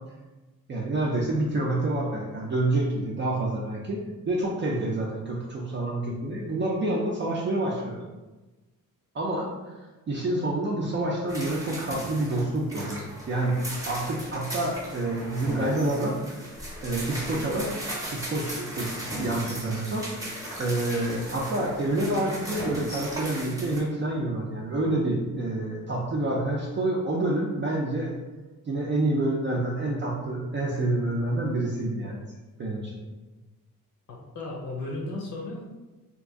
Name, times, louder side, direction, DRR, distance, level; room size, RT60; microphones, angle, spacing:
voice 1, 0.7-8.0 9.1-16.4 16.8-17.8 18.1-28.1 28.7-32.2 32.6-33.0, right 2 dB, 35° right, -3 dB, 0.4 m, -28 dB
sound 1, 11.3-23.8, right 1 dB, 10° right, 0.8 m, -37 dB
voice 2, 34.1-35.7, left 2 dB, 55° left, -1 dB, 0.7 m, -35 dB
2.9 x 2.5 x 3.5 m, 1.2 s
cardioid pair, 145°, 34 cm